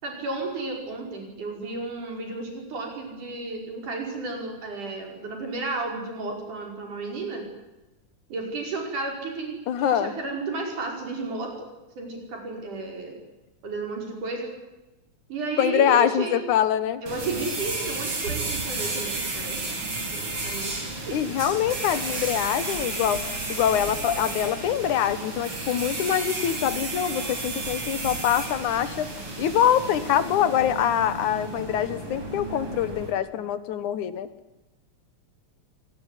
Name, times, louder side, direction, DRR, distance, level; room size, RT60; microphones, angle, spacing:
voice 1, 0.0-7.4 8.3-11.6 12.0-13.2 13.6-14.5 15.3-16.4 17.0-19.8 20.1-21.2, right 3 dB, 90° right, 2 dB, 7.0 m, -33 dB
voice 2, 9.7-10.1 15.6-17.0 21.1-23.2 23.5-29.1 29.4-34.3, left 10 dB, 80° left, 14 dB, 2.7 m, -24 dB
sound 1, 17.1-33.1, right 2 dB, 45° right, 5.6 m, -32 dB
26.0 x 19.5 x 10.0 m, 1.0 s
omnidirectional pair, 3.5 m